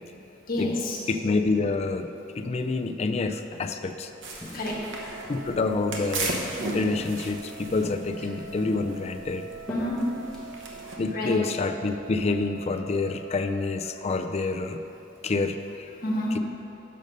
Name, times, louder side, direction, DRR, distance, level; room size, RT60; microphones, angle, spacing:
voice 1, 0.5-1.0 4.5-4.9 9.7-10.1 11.1-11.4 16.0-16.4, left 1 dB, 50° left, -3 dB, 1.3 m, -28 dB
voice 2, 1.1-2.1 2.4-4.1 5.3-6.4 6.7-9.5 11.0-14.8 15.2-15.9, left 3 dB, 35° left, 7 dB, 0.4 m, -27 dB
Walk footsteps, 3.5-3.9 4.4-5.4 5.9-6.5 6.9-7.5 7.8-8.4 8.7-11.0, left 1 dB, ahead, 1.2 m, -42 dB
sound 1, 4.2-11.0, right 2 dB, 85° right, 1.0 m, -37 dB
Wind instrument woodwind instrument, 4.6-13.9, right 4 dB, 25° right, 0.9 m, -46 dB
6.5 x 5.3 x 6.5 m, 3.0 s
head